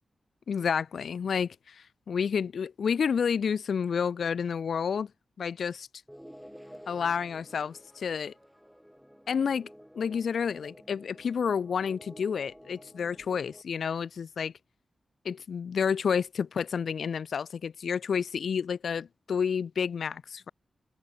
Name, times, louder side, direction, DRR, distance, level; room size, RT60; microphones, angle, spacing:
voice 1, 0.5-5.1 5.4-5.9 6.9-8.3 9.3-9.7 9.9-14.5 15.2-20.5, left 6 dB, 70° left, 0.5 m, -30 dB
sound 1, 6.1-13.6, equal, ahead, 6.2 m, -51 dB
wide cardioid pair, 170°, 0 cm